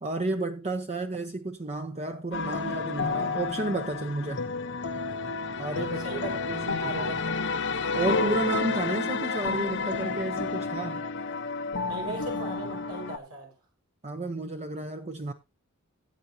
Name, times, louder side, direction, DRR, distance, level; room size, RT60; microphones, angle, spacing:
voice 1, 0.0-4.4 5.6-6.1 6.5-7.1 7.9-11.0 14.0-15.3, right 2 dB, 30° right, 0.7 m, -32 dB
sound 1, 2.3-13.2, left 4 dB, 55° left, 0.9 m, -30 dB
voice 2, 6.0-7.4 11.8-13.5, right 2 dB, 85° right, 5.1 m, -37 dB
17.5 x 7.9 x 2.8 m
head